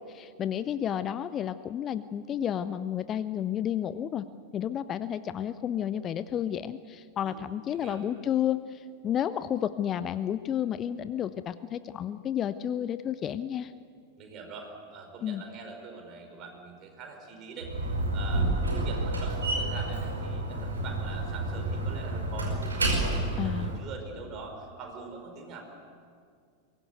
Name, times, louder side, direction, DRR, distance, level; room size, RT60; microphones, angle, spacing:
voice 1, 0.0-4.3 4.5-13.7 15.2-15.4 23.4-23.7, left 10 dB, 30° left, 14 dB, 0.6 m, -31 dB
voice 2, 7.7-8.0 14.2-17.7 18.1-25.6, right 4 dB, 35° right, 3 dB, 5.0 m, -44 dB
Slam, 17.6-23.8, right 2 dB, 75° right, 5.2 m, -29 dB
23.0 x 18.5 x 8.2 m, 2.2 s
figure-of-eight pair, 90°, 0 cm